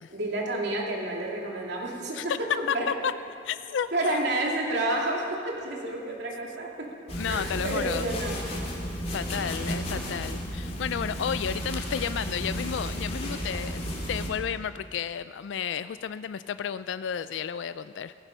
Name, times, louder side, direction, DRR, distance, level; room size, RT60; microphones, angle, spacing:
voice 1, 0.1-2.9 3.9-8.4, right 1 dB, 65° right, -2 dB, 2.9 m, -30 dB
voice 2, 2.7-3.1 3.4-4.2 7.2-8.0 9.1-13.8 14.1-18.1, left 7 dB, 85° left, 13 dB, 0.4 m, -32 dB
sound 1, 7.1-14.3, equal, 35° left, 2.5 m, -33 dB
17.0 x 15.0 x 5.5 m, 2.6 s
head